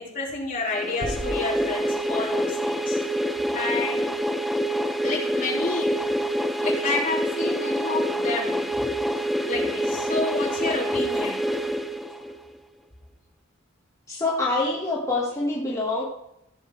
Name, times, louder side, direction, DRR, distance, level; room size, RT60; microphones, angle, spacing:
voice 1, 0.0-3.0 3.5-4.1 5.0-6.2 6.6-8.8 9.4-11.4, left 3 dB, 40° left, -4 dB, 3.2 m, -30 dB
sound 1, 0.7-12.5, equal, ahead, 0.5 m, -26 dB
sound 2, 1.0-2.6, right 1 dB, 60° right, 1.5 m, -37 dB
voice 2, 14.1-16.0, left 2 dB, 15° left, -4 dB, 1.6 m, -25 dB
15.0 x 7.2 x 4.6 m, 0.83 s
head